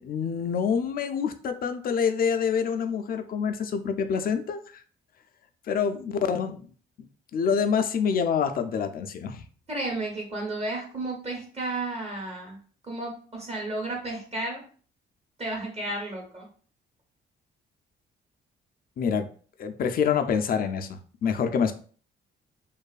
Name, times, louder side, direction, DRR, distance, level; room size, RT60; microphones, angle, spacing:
voice 1, 0.0-4.6 5.7-6.6 7.3-9.4 19.0-19.3 19.6-21.7, left 6 dB, 50° left, 8 dB, 0.4 m, -26 dB
voice 2, 9.7-12.6 12.8-14.6 15.4-16.4, right 2 dB, 30° right, -1 dB, 1.1 m, -32 dB
2.6 x 2.3 x 2.3 m, 0.42 s
cardioid pair, 90°, 20 cm